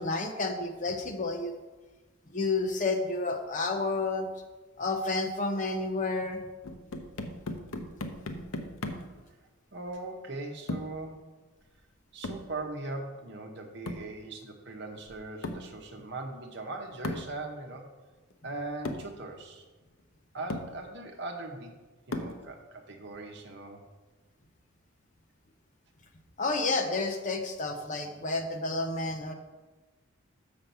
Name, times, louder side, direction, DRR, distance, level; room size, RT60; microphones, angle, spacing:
voice 1, 0.0-1.5 2.3-4.3 4.8-6.4 26.4-29.3, left 3 dB, 35° left, 4 dB, 0.8 m, -30 dB
sound 1, 6.6-9.2 10.7-11.0 12.2-12.5 13.9-14.2 15.4-15.7 17.0-17.4 18.3-18.4 18.8-19.1 20.0-20.1 20.5-20.8 22.1-22.5, left 2 dB, 85° left, 0.8 m, -37 dB
voice 2, 9.7-11.3 12.1-17.9 18.4-19.6 20.3-21.8 22.1-23.8, right 2 dB, 55° right, 3 dB, 1.0 m, -40 dB
5.9 x 5.2 x 6.8 m, 1.2 s
head